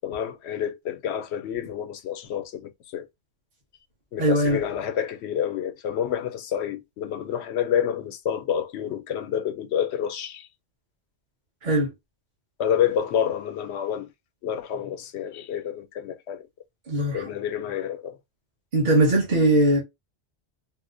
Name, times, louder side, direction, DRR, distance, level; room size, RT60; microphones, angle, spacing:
voice 1, 0.0-3.1 4.1-10.5 12.6-14.1 14.4-16.4 17.1-18.2, left 9 dB, 85° left, 0.9 m, -28 dB
voice 2, 4.2-4.6 11.6-11.9 16.9-17.3 18.7-19.8, right 1 dB, 45° right, 1.2 m, -20 dB
4.2 x 2.1 x 2.5 m
omnidirectional pair, 1.1 m